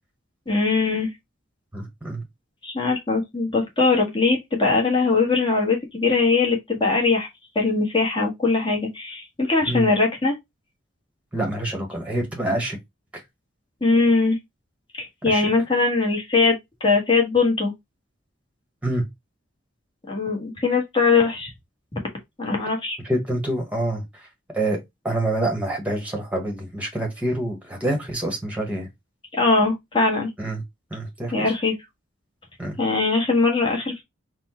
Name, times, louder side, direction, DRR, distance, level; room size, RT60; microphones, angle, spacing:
voice 1, 0.5-1.1 2.6-7.3 7.5-10.4 13.8-14.4 14.9-17.7 20.1-21.5 21.9-22.0 22.4-23.0 29.3-30.3 31.3-31.7 32.8-34.0, left 3 dB, 25° left, 1.4 m, -21 dB
voice 2, 1.7-2.2 9.6-9.9 11.3-12.8 13.1-13.2 15.3-15.4 18.8-19.0 23.0-24.3 24.5-24.8 25.0-28.9 30.4-30.6 30.9-31.4 32.6-32.8, right 1 dB, 5° right, 1.3 m, -26 dB
4.3 x 2.3 x 4.2 m
head